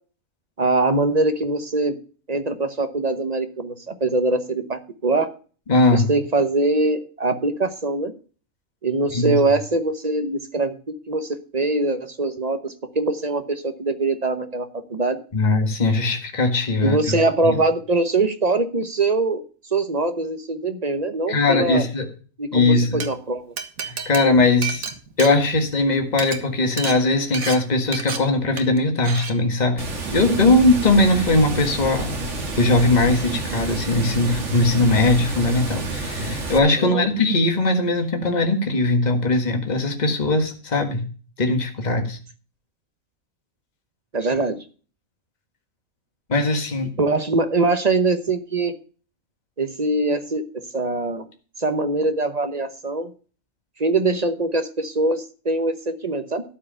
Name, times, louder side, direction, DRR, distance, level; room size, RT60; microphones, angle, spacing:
voice 1, 0.6-2.0 2.3-5.3 5.9-8.1 8.8-10.7 11.1-12.6 12.9-15.2 16.8-19.4 19.7-21.8 22.4-23.5 36.8-37.1 44.1-44.6 47.0-48.7 49.6-50.4 50.7-51.2 51.6-53.1 53.8-56.4, right 2 dB, 30° right, 9 dB, 1.0 m, -22 dB
voice 2, 5.7-6.1 9.1-9.4 15.3-17.2 17.4-17.5 21.3-22.1 22.5-23.0 23.8-24.8 25.2-29.8 30.1-32.2 32.6-41.0 41.4-42.2 46.3-46.9, left 2 dB, 30° left, 5 dB, 1.7 m, -20 dB
Glass, 22.8-23.1 23.6-25.8 26.1-26.4 26.8-27.0 27.3-27.6 27.9-28.2 28.6-28.8 29.0-29.3, right 6 dB, 80° right, 1.8 m, -30 dB
Water, 29.8-36.6, right 2 dB, 60° right, 2.0 m, -29 dB
13.0 x 4.8 x 8.8 m, 0.39 s
omnidirectional pair, 1.4 m